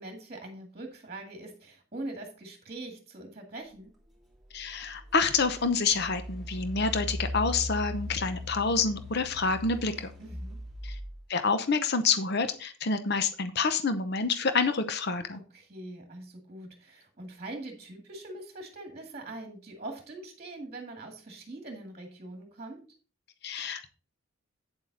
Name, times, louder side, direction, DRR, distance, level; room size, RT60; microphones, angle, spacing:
voice 1, 0.0-3.9 10.2-10.6 15.3-22.8, right 2 dB, 30° right, 2 dB, 1.9 m, -43 dB
voice 2, 4.5-10.1 10.8-10.9 11.3-15.4 23.4-23.9, left 4 dB, 50° left, 10 dB, 0.8 m, -28 dB
Engine, 4.5-4.6 5.2-11.2, left 1 dB, ahead, 2.6 m, -38 dB
9.0 x 7.5 x 3.9 m, 0.37 s
head